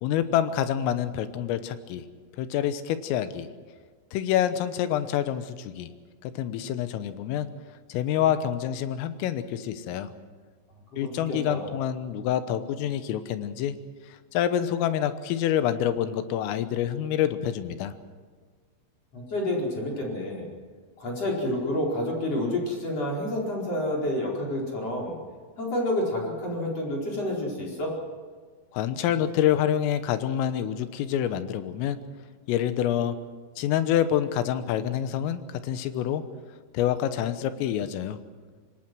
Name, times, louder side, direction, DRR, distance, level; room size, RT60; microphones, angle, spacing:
voice 1, 0.0-2.1 2.4-3.5 4.1-5.9 6.2-7.5 7.9-10.1 11.0-13.8 14.3-17.9 28.7-32.0 32.5-33.2 33.6-36.2 36.7-38.2, left 10 dB, 85° left, 11 dB, 3.7 m, -27 dB
voice 2, 10.9-11.7 19.1-20.5 21.0-25.2 25.6-27.9, left 1 dB, 30° left, -2 dB, 5.3 m, -29 dB
25.5 x 21.0 x 6.2 m, 1.5 s
omnidirectional pair, 5.8 m